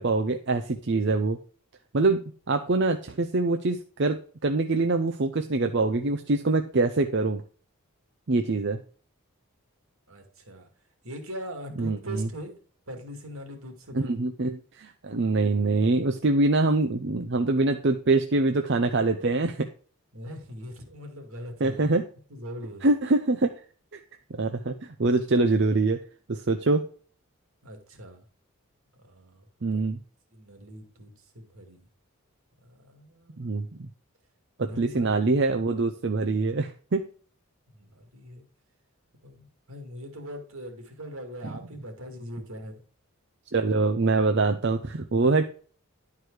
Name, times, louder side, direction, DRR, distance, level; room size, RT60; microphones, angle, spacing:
voice 1, 0.0-1.4 1.9-7.4 8.3-8.8 11.8-12.3 13.9-19.7 21.6-22.1 22.8-23.5 23.9-24.0 24.3-26.0 26.3-26.9 29.6-30.0 33.4-33.9 34.6-37.1 43.5-45.5, right 3 dB, 55° right, 6 dB, 0.6 m, -24 dB
voice 2, 10.1-10.7 11.0-12.6 12.9-14.2 20.1-22.0 22.3-22.9 27.6-28.3 28.9-29.8 30.3-31.9 32.6-33.5 34.7-35.3 37.7-38.5 39.2-42.8, equal, 75° right, 4 dB, 2.2 m, -41 dB
11.0 x 4.7 x 4.7 m, 0.42 s
head